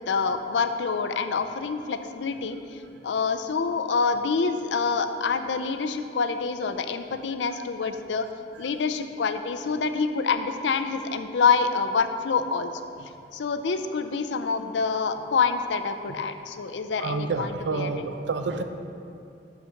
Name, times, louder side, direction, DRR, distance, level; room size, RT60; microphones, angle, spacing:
voice 1, 0.0-2.6 3.0-8.3 8.6-12.7 13.3-17.9, left 5 dB, 85° left, 9 dB, 0.5 m, -26 dB
voice 2, 17.0-18.6, right 4 dB, 85° right, 7 dB, 0.5 m, -28 dB
6.4 x 5.7 x 5.7 m, 2.5 s
head